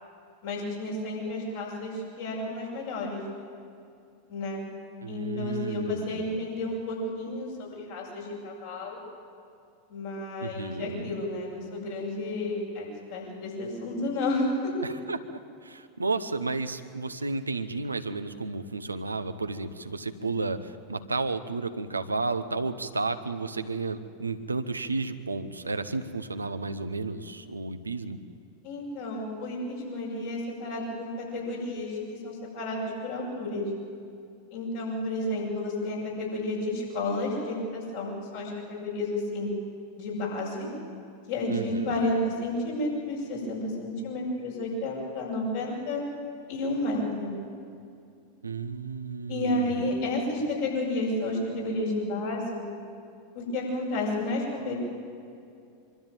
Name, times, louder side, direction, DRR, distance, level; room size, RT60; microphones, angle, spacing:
voice 1, 0.4-3.2 4.3-4.6 5.1-9.0 9.9-14.7 28.6-33.6 34.5-39.5 39.9-40.7 41.3-46.0 46.5-47.3 49.3-52.7 53.3-54.7, left 2 dB, 65° left, -4 dB, 7.6 m, -31 dB
voice 2, 5.0-6.4 10.4-11.2 14.8-28.2 41.5-41.9 48.4-49.9, right 3 dB, 90° right, 10 dB, 0.9 m, -32 dB
24.0 x 13.0 x 9.0 m, 2.5 s
figure-of-eight pair, 90°, 0 cm